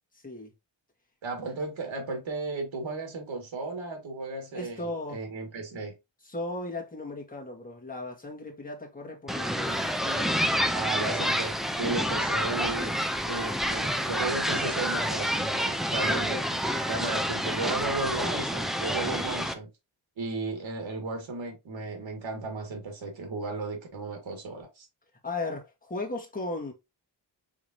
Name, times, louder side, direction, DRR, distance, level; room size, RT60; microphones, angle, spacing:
voice 1, 1.2-5.9 10.7-13.0 13.2-16.4 16.9-19.7 20.2-24.9, right 3 dB, 85° right, 1.9 m, -34 dB
voice 2, 4.5-5.2 6.2-10.7 16.1-16.8 25.2-26.7, left 2 dB, 20° left, 1.9 m, -37 dB
sound 1, 9.3-19.5, equal, ahead, 0.5 m, -28 dB
5.0 x 3.7 x 2.8 m
wide cardioid pair, 95°, 45 cm